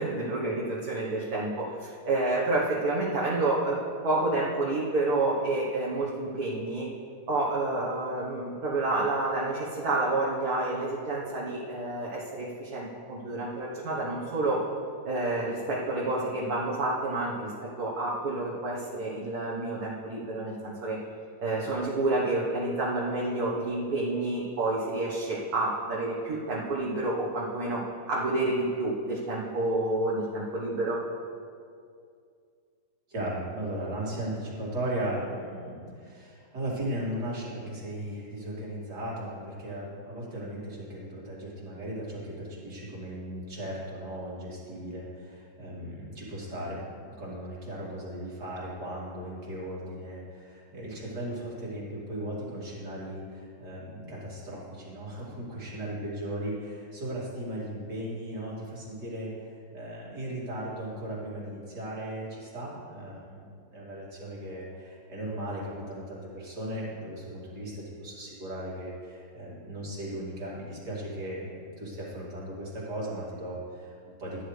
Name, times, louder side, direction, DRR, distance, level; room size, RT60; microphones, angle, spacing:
voice 1, 0.0-6.9 7.3-14.7 15.1-21.0 21.4-31.0, right 2 dB, 65° right, -6 dB, 1.8 m, -29 dB
voice 2, 33.1-74.4, right 1 dB, 85° right, -6 dB, 3.4 m, -37 dB
15.5 x 10.0 x 3.3 m, 2.3 s
omnidirectional pair, 1.7 m